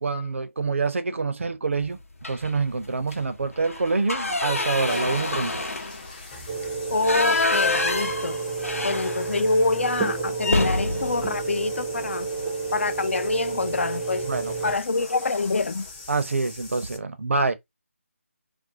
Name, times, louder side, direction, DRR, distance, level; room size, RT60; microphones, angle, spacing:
voice 1, 0.0-2.0 2.3-5.5 8.8-8.9 14.2-14.7 16.1-17.5, right 3 dB, 65° right, 0.5 m, -26 dB
sound 1, 2.2-2.6 3.0-3.2 3.5-9.6 9.9-10.0 10.4-12.5 13.9-14.1 14.5-14.7 15.0-15.6, left 2 dB, 80° left, 0.8 m, -28 dB
sound 2, 4.1-17.0, left 3 dB, 30° left, 0.9 m, -43 dB
sound 3, 6.5-14.8, right 4 dB, 10° right, 0.5 m, -30 dB
voice 2, 6.9-8.4 8.8-12.3 12.7-14.3 14.6-15.9, left 3 dB, 60° left, 0.4 m, -26 dB
2.4 x 2.1 x 2.7 m
figure-of-eight pair, 155°, 8 cm